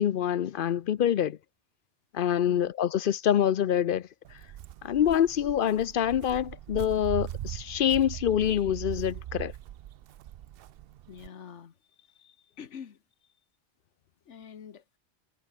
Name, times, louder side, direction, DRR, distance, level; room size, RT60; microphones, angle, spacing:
voice 1, 0.0-1.4 2.1-4.1 4.8-9.5, left 10 dB, 60° left, 0.7 m, -26 dB
Walk footsteps, 4.2-11.3, right 12 dB, 65° right, 0.7 m, -40 dB
voice 2, 11.1-11.8 12.6-13.0 14.3-15.0, left 7 dB, 80° left, 1.5 m, -45 dB
omnidirectional pair, 1.2 m